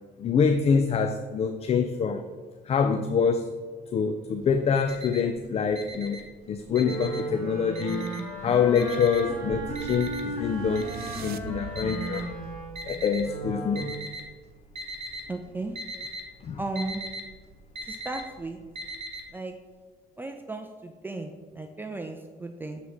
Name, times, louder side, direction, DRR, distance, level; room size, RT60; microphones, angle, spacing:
voice 1, 0.2-2.3 2.7-3.5 3.9-8.1 8.4-10.9 11.2-12.3 12.9-14.0 16.4-16.6, left 6 dB, 35° left, 8 dB, 0.5 m, -25 dB
Alarm, 4.4-5.4 5.7-7.4 7.8-8.4 8.8-13.2 13.8-14.4 14.6-15.3 15.5-19.2, right 1 dB, 40° right, 1.6 m, -39 dB
Wind instrument woodwind instrument, 6.7-14.1, right 2 dB, 5° left, 2.2 m, -36 dB
sound 1, 8.1-14.1, right 7 dB, 65° right, 0.5 m, -44 dB
voice 2, 15.3-15.8 16.6-17.0 17.9-18.6 19.3-19.5 20.2-22.8, right 2 dB, 10° right, 5 dB, 0.5 m, -35 dB
7.6 x 4.1 x 6.3 m, 1.4 s
cardioid pair, 110°, 17 cm